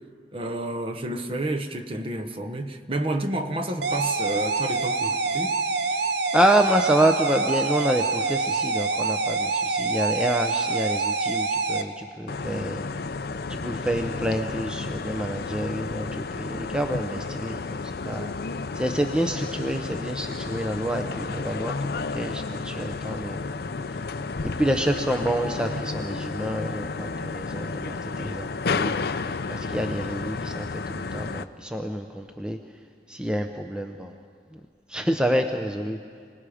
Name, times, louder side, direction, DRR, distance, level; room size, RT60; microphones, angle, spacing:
voice 1, 0.3-5.6, right 1 dB, 30° right, 6 dB, 0.9 m, -30 dB
sound 1, 3.8-11.8, right 4 dB, 65° right, 0.9 m, -26 dB
voice 2, 6.3-12.8 13.5-17.8 18.0-18.3 18.7-23.4 24.4-28.9 29.5-32.6 33.1-34.1 34.9-36.0, right 1 dB, 5° right, 5 dB, 0.6 m, -27 dB
sound 2, 12.3-31.4, left 4 dB, 60° left, 0.5 m, -32 dB
27.0 x 19.0 x 5.0 m, 2.2 s
head